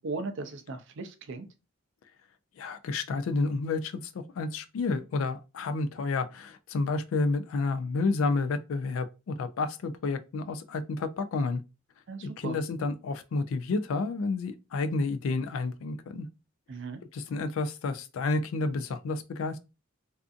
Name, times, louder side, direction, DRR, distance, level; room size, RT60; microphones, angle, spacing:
voice 1, 0.0-1.5 12.1-12.6 16.7-17.0, right 3 dB, 60° right, 0.4 m, -37 dB
voice 2, 2.6-11.6 12.2-16.3 17.1-19.6, left 3 dB, 70° left, 0.3 m, -30 dB
2.5 x 2.4 x 2.4 m
head